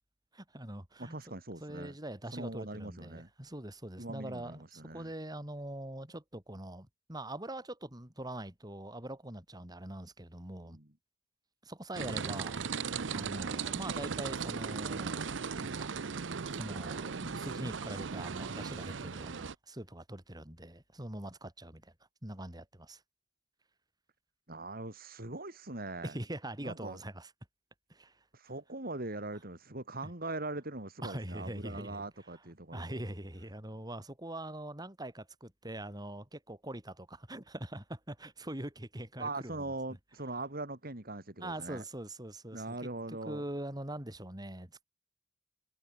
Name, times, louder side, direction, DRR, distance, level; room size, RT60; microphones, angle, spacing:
voice 1, 0.3-10.8 11.6-15.9 16.5-21.9 22.2-23.0 26.0-27.3 27.9-28.1 30.0-30.1 31.0-32.0 32.7-39.6 41.4-44.8, right 1 dB, 20° right, 4.2 m, -43 dB
voice 2, 1.0-2.0 2.3-3.3 4.0-5.1 10.6-10.9 24.5-26.2 26.6-27.0 28.3-33.0 39.2-41.8 42.5-43.4, right 2 dB, 55° right, 3.7 m, -41 dB
sound 1, 11.9-19.5, right 5 dB, 85° right, 0.7 m, -37 dB
head